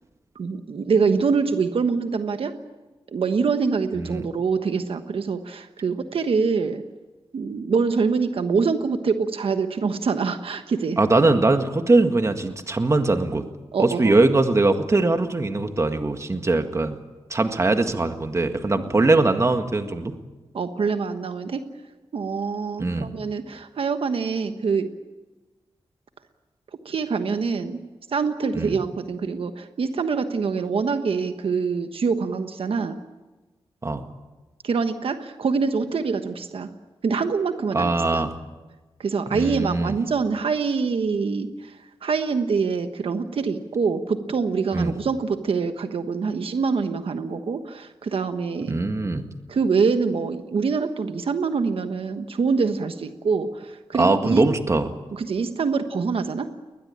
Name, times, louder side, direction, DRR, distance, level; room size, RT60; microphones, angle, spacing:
voice 1, 0.3-2.5 3.1-6.8 7.3-11.0 13.7-14.2 18.9-19.1 20.5-21.6 22.1-24.9 26.8-27.8 28.1-33.0 34.6-36.7 37.0-38.2 39.0-48.7 49.5-54.4 55.1-56.5, right 5 dB, 75° right, 8 dB, 1.3 m, -25 dB
voice 2, 11.0-13.4 13.8-17.0 17.3-20.1 22.8-23.1 28.5-28.7 33.8-34.0 37.7-38.3 39.3-40.0 44.7-44.9 48.7-49.3 54.0-54.9, right 2 dB, 30° right, 7 dB, 1.8 m, -21 dB
21.0 x 20.5 x 8.8 m, 1.2 s
wide cardioid pair, 105°, 10 cm